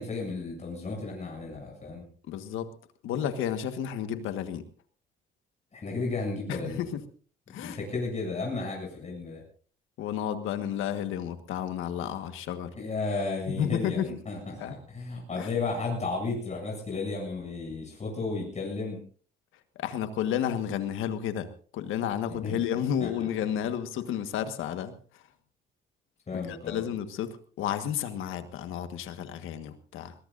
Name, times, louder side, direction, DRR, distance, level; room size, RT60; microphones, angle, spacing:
voice 1, 0.0-2.1 5.7-6.9 7.5-9.4 12.8-19.0 22.3-22.6 23.0-23.1 26.3-26.8, left 3 dB, 35° left, -1 dB, 7.6 m, -33 dB
voice 2, 2.3-2.7 3.0-4.6 6.5-7.0 7.5-7.8 10.0-12.7 13.5-14.1 14.6-14.8 15.4-15.5 19.7-24.9 26.3-30.1, left 9 dB, 90° left, 10 dB, 1.6 m, -32 dB
21.5 x 21.0 x 2.6 m, 0.43 s
cardioid pair, 90°, 20 cm